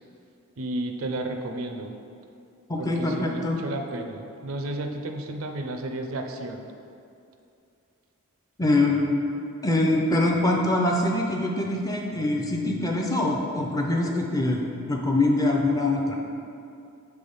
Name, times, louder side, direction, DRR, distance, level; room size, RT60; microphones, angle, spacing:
voice 1, 0.6-1.9 2.8-6.6, right 2 dB, 70° right, 4 dB, 0.5 m, -32 dB
voice 2, 2.7-3.6 8.6-9.1 9.6-14.6 14.9-16.2, left 2 dB, 15° left, 0 dB, 0.5 m, -24 dB
6.0 x 3.4 x 5.4 m, 2.6 s
head